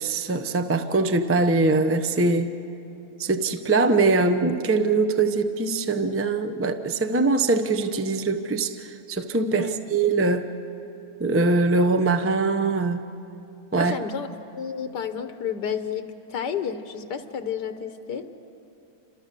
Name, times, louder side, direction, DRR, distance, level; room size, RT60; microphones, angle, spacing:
voice 1, 0.0-2.5 3.2-10.5 11.2-13.0 13.7-14.0, right 3 dB, 15° right, 8 dB, 0.5 m, -22 dB
voice 2, 13.7-14.3 14.5-18.3, left 7 dB, 85° left, 8 dB, 1.5 m, -31 dB
29.5 x 26.5 x 6.8 m, 2.9 s
omnidirectional pair, 1.7 m